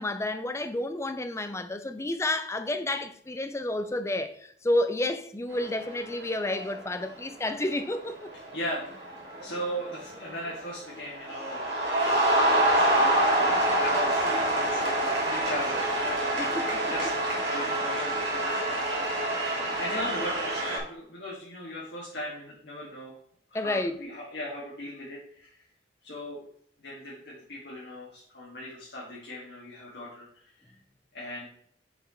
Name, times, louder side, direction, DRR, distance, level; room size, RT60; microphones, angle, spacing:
voice 1, 0.0-8.3 16.4-16.8 23.5-24.1, left 1 dB, 15° left, 0.5 m, -30 dB
sound 1, 5.5-6.0 6.3-6.8 7.7-7.9 8.3-10.5 10.9-20.8, right 1 dB, 75° right, 2.9 m, -26 dB
voice 2, 8.5-12.0 12.4-16.4 16.9-23.1 23.5-25.6 26.0-26.4 26.8-30.7 31.1-31.5, equal, 65° left, 1.9 m, -38 dB
6.9 x 4.4 x 4.3 m
head